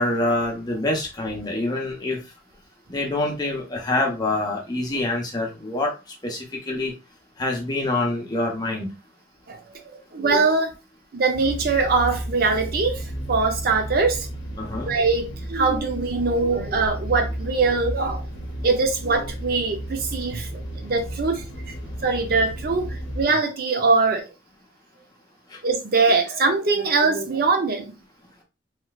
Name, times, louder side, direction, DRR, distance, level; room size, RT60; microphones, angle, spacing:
voice 1, 0.0-2.2 2.9-5.9 6.2-6.9 7.4-8.9 14.6-14.9 25.5-25.6, left 2 dB, 25° left, 0.9 m, -26 dB
voice 2, 9.5-10.7 11.1-13.0 13.3-14.3 14.9-18.2 18.6-20.5 20.8-21.4 22.0-24.3 25.6-27.9, right 4 dB, 55° right, 0.6 m, -22 dB
sound 1, 11.3-23.2, right 1 dB, 80° left, 0.7 m, -33 dB
3.1 x 3.1 x 2.3 m
head